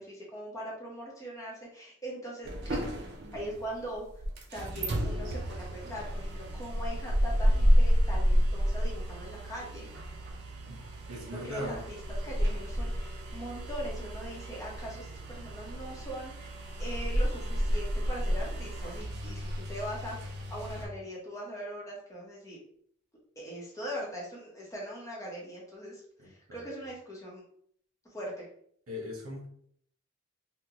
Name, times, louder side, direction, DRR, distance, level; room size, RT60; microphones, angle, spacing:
voice 1, 0.0-2.9 3.3-4.0 4.5-9.9 11.3-22.6 23.4-27.4 28.1-28.5, equal, 15° left, -4 dB, 0.8 m, -41 dB
sound 1, 2.5-20.9, equal, 50° right, 0.5 m, -30 dB
voice 2, 11.1-11.7 26.2-26.7 28.9-29.5, left 1 dB, 85° right, -1 dB, 1.0 m, -40 dB
3.7 x 2.2 x 2.8 m, 0.64 s
head